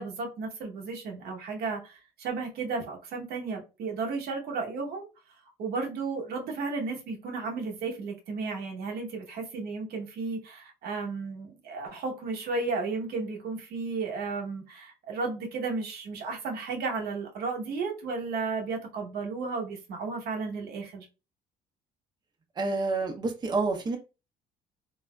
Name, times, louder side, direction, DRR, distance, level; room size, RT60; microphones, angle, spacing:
voice 1, 0.0-5.1 5.6-21.1, right 4 dB, 65° right, 0.9 m, -33 dB
voice 2, 22.6-24.0, right 3 dB, 25° right, 0.6 m, -28 dB
3.3 x 2.3 x 2.2 m
cardioid pair, 110°, 17 cm